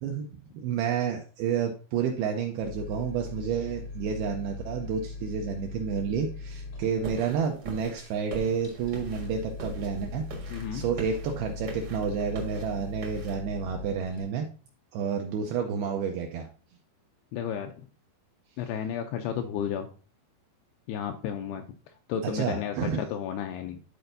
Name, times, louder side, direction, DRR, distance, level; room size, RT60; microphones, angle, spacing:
voice 1, 0.5-14.5 14.9-16.5 22.2-23.0, right 7 dB, 85° right, 3 dB, 2.2 m, -30 dB
sound 1, 2.6-14.2, left 3 dB, 45° left, 0.9 m, -40 dB
sound 2, 7.0-13.4, right 2 dB, 65° right, 1.2 m, -43 dB
voice 2, 10.5-10.9 17.3-17.9 18.6-19.9 20.9-23.8, left 8 dB, 85° left, 5 dB, 2.3 m, -33 dB
12.0 x 4.4 x 2.6 m, 0.37 s
omnidirectional pair, 5.1 m